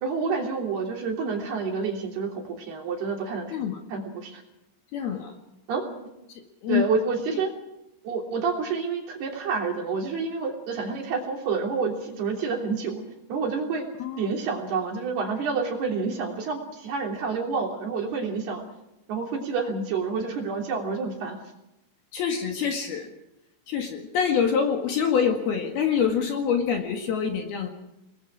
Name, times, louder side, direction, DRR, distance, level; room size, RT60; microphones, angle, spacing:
voice 1, 0.0-3.5 3.9-4.4 5.7-5.9 6.7-7.5 8.0-13.0 13.3-13.9 14.2-18.6 19.1-21.4, right 5 dB, 55° right, 1 dB, 4.9 m, -28 dB
voice 2, 3.5-3.8 4.9-5.3 6.6-6.8 14.0-14.3 22.1-23.1 23.7-27.7, left 7 dB, 60° left, 3 dB, 3.3 m, -25 dB
28.5 x 21.0 x 4.8 m, 0.90 s
omnidirectional pair, 5.9 m